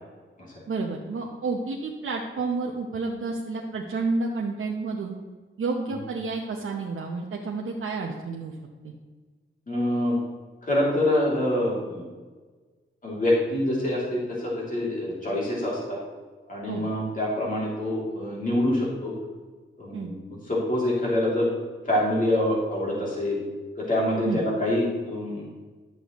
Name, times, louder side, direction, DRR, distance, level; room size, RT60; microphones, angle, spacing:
voice 1, 0.7-5.2 5.6-8.6 8.8-8.9 16.7-16.8 19.9-20.1 24.2-24.4, right 3 dB, 80° right, 0 dB, 0.9 m, -30 dB
voice 2, 9.7-10.2 10.6-12.0 13.0-16.0 16.5-19.1 19.8-21.5 21.9-23.4 23.8-25.4, left 1 dB, 40° left, -5 dB, 2.8 m, -25 dB
11.0 x 8.1 x 3.1 m, 1.4 s
wide cardioid pair, 130°, 21 cm